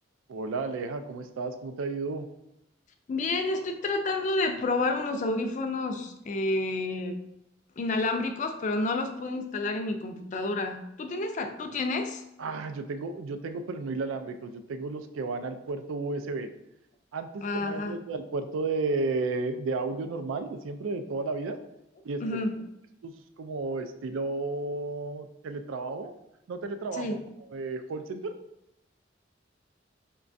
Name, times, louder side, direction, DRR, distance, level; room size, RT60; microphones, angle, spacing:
voice 1, 0.3-2.3 12.4-16.5 17.1-21.6 22.0-22.2 23.0-26.1 26.5-27.2 27.5-28.4, right 3 dB, 85° right, 8 dB, 0.4 m, -33 dB
voice 2, 3.1-7.2 7.8-12.2 17.4-18.0 22.2-22.6 26.9-27.2, left 2 dB, 40° left, 5 dB, 0.3 m, -30 dB
4.7 x 2.2 x 2.5 m, 0.82 s
head